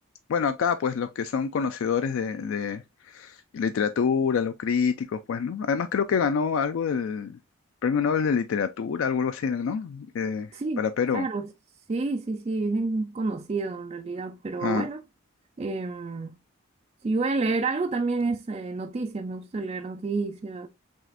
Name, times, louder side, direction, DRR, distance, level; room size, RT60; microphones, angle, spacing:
voice 1, 0.3-7.4 7.8-10.5 10.8-11.3 14.6-14.9, left 6 dB, 65° left, 0.3 m, -26 dB
voice 2, 10.5-10.9 11.1-11.5 11.9-15.0 15.6-16.4 17.0-20.7, right 3 dB, 30° right, 0.3 m, -29 dB
6.1 x 2.4 x 2.5 m
head